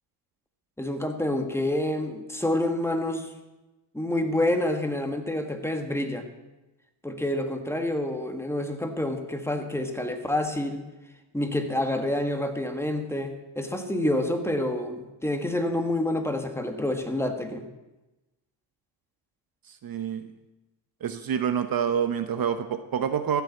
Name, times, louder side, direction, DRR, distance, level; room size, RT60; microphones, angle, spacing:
voice 1, 0.8-3.3 3.9-6.3 7.0-10.8 11.3-17.7, left 1 dB, 5° left, 5 dB, 1.6 m, -28 dB
voice 2, 19.7-20.2 21.0-23.4, right 8 dB, 50° right, 9 dB, 0.9 m, -27 dB
15.0 x 7.1 x 8.4 m, 1.1 s
cardioid pair, 95°, 47 cm